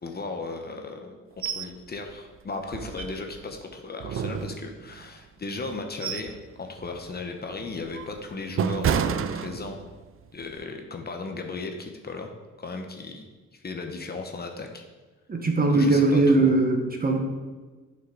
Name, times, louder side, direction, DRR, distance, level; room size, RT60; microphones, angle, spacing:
voice 1, 0.0-1.2 1.5-9.8 10.3-12.3 12.6-14.8 15.7-16.6, left 3 dB, 30° left, 4 dB, 0.9 m, -36 dB
sound 1, 1.4-1.7 2.1-2.2 2.7-3.5 4.0-5.0 5.6-6.4 6.8-7.0 7.6-10.0 10.4-10.6, right 8 dB, 45° right, 0.5 m, -30 dB
voice 2, 15.3-17.2, right 2 dB, 30° right, 3 dB, 1.3 m, -20 dB
7.9 x 5.8 x 3.9 m, 1.3 s
cardioid pair, 90°, 30 cm